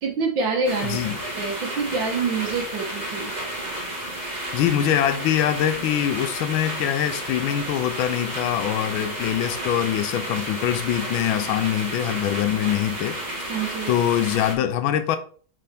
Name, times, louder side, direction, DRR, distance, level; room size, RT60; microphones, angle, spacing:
voice 1, 0.0-3.3 13.5-13.9, right 4 dB, 70° right, 1.8 m, -26 dB
sound 1, 0.6-14.5, right 1 dB, 25° right, 1.6 m, -32 dB
voice 2, 0.8-1.2 4.5-13.2 13.9-15.2, left 11 dB, 85° left, 1.4 m, -23 dB
5.8 x 5.5 x 3.4 m
omnidirectional pair, 2.2 m